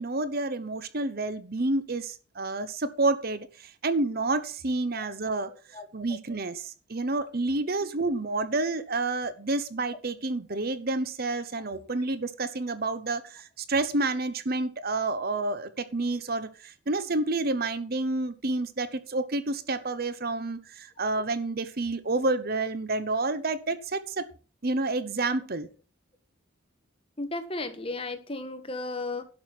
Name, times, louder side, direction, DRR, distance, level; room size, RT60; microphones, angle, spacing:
voice 1, 0.0-24.3 24.6-25.7, right 2 dB, 45° right, 0.9 m, -29 dB
voice 2, 27.2-29.2, left 2 dB, 25° left, 1.5 m, -34 dB
11.5 x 6.3 x 6.1 m
head